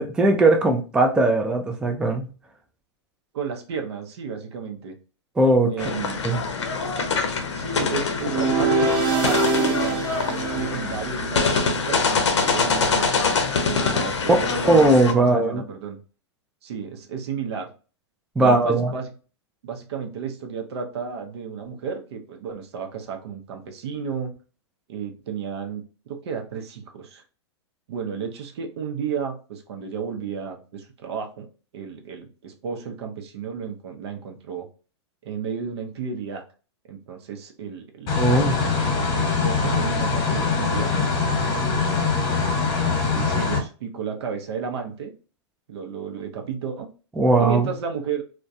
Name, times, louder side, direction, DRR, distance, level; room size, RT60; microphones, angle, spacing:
voice 1, 0.0-2.3 5.4-5.7 6.2-6.4 14.7-15.6 18.4-18.9 38.2-38.6 47.2-47.7, right 2 dB, 5° right, 0.3 m, -19 dB
voice 2, 3.3-5.0 5.7-6.2 7.5-8.9 9.2-13.1 13.6-16.0 16.6-17.7 18.4-19.1 19.6-24.4 24.9-27.2 27.9-31.5 31.7-34.7 35.2-36.4 36.9-38.7 39.1-40.9 41.7-42.3 42.8-45.1 45.7-46.9 47.4-48.2, right 6 dB, 70° right, 0.6 m, -33 dB
sound 1, 5.8-15.1, left 4 dB, 85° left, 0.5 m, -24 dB
sound 2, 8.2-11.5, right 4 dB, 35° right, 0.8 m, -24 dB
sound 3, 38.1-43.6, left 4 dB, 35° left, 1.0 m, -23 dB
2.3 x 2.2 x 2.6 m
hypercardioid pair, 115°, 15 cm